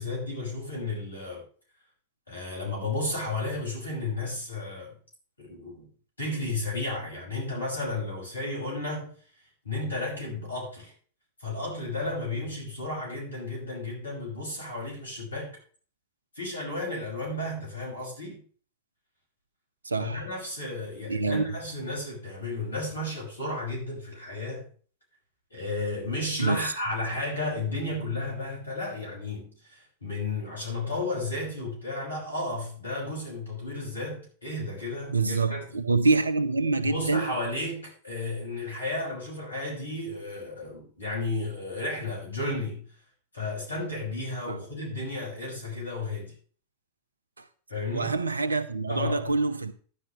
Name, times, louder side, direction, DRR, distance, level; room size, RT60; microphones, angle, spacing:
voice 1, 0.0-1.4 2.3-4.9 5.4-5.9 6.2-9.2 9.6-10.9 11.4-15.5 16.4-18.4 20.0-24.6 25.5-35.6 36.8-42.8 43.3-46.3 47.7-48.2 48.9-49.2, left 2 dB, 75° left, 6.0 m, -33 dB
voice 2, 19.8-20.2 21.1-21.4 26.4-26.7 35.1-37.3 44.5-44.6 47.9-49.7, right 3 dB, 75° right, 0.9 m, -26 dB
12.0 x 10.5 x 3.2 m
figure-of-eight pair, 90°, 0 cm